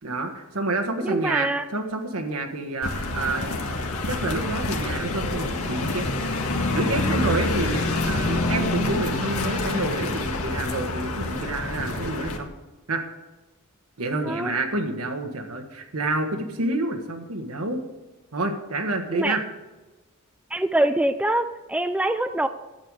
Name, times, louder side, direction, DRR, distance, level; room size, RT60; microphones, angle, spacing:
voice 1, 0.0-3.6 4.1-6.1 6.7-12.5 12.9-13.0 14.0-17.8 18.3-19.4, right 2 dB, 80° right, 5 dB, 1.5 m, -28 dB
voice 2, 1.0-1.6 14.2-14.5 19.1-19.4 20.5-22.5, right 1 dB, 5° right, 9 dB, 0.4 m, -24 dB
sound 1, 2.8-12.4, left 2 dB, 80° left, 1.6 m, -27 dB
12.0 x 9.0 x 4.8 m, 1.1 s
head